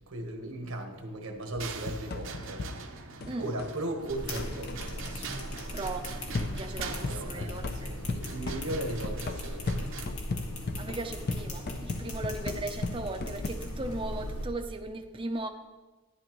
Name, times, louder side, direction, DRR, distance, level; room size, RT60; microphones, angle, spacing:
voice 1, 0.1-2.7 3.4-5.5 6.8-9.9, right 1 dB, 75° right, 3 dB, 1.3 m, -37 dB
sound 1, 1.5-3.8 4.4-4.9 6.3-13.5, left 3 dB, 45° left, 0.5 m, -37 dB
sound 2, 1.6-10.1, right 5 dB, 60° right, 0.8 m, -43 dB
sound 3, 4.1-14.4, left 1 dB, 85° left, 1.9 m, -39 dB
voice 2, 5.7-7.9 10.8-15.5, right 2 dB, 25° right, 5 dB, 0.5 m, -37 dB
11.5 x 11.0 x 3.0 m, 1.2 s
head